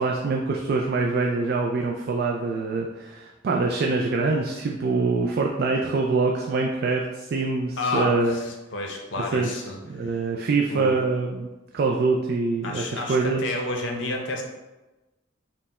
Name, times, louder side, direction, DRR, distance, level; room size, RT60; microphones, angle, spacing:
voice 1, 0.0-8.4 9.3-9.6 9.9-11.5 11.7-13.4, right 3 dB, 50° right, 0 dB, 0.3 m, -24 dB
voice 2, 7.8-10.3 10.6-11.0 12.6-14.4, left 2 dB, 65° left, 1 dB, 0.6 m, -30 dB
4.3 x 2.1 x 4.0 m, 1.1 s
head